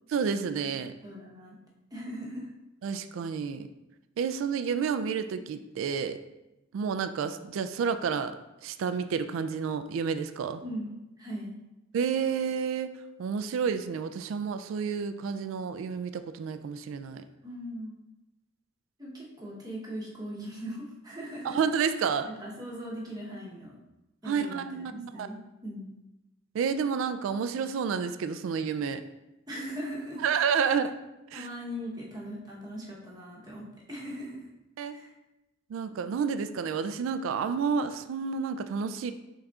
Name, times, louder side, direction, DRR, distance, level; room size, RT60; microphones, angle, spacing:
voice 1, 0.1-0.9 2.8-3.7 4.2-6.2 6.7-10.6 11.9-17.3 21.4-22.3 24.3-25.3 26.5-29.0 30.2-30.9 31.3-31.5 34.8-35.0 35.7-39.1, right 6 dB, 80° right, 11 dB, 0.3 m, -30 dB
voice 2, 1.0-1.6 1.9-2.5 10.6-11.5 17.4-18.0 19.0-21.6 22.4-23.8 24.2-26.0 29.5-30.2 30.6-30.7 31.3-34.5 34.9-35.1, equal, 20° right, -4 dB, 0.9 m, -39 dB
6.2 x 3.6 x 2.3 m, 0.96 s
head